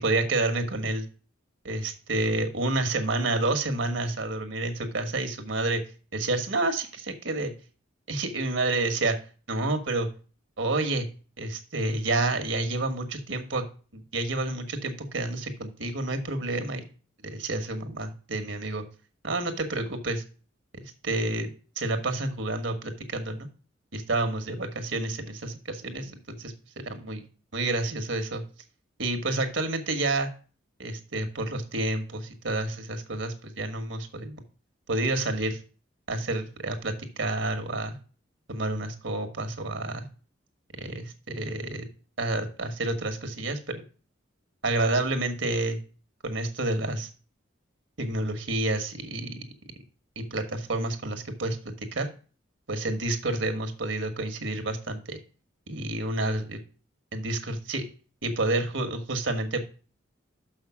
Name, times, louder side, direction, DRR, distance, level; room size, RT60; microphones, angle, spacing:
voice 1, 0.0-1.0 1.6-5.8 6.1-7.5 8.1-9.2 9.5-10.1 10.6-11.1 11.4-13.6 13.9-16.8 17.2-18.8 19.2-20.2 20.8-21.5 21.8-23.5 23.9-27.2 27.5-28.4 29.0-30.3 30.8-34.4 34.9-35.6 36.1-38.0 38.5-40.1 40.8-41.8 42.2-43.8 44.6-45.8 46.2-47.1 48.0-49.5 50.1-52.1 52.7-55.2 55.7-56.6 57.1-57.9 58.2-59.6, right 2 dB, 75° right, 6 dB, 1.5 m, -29 dB
6.5 x 5.7 x 6.0 m, 0.38 s
head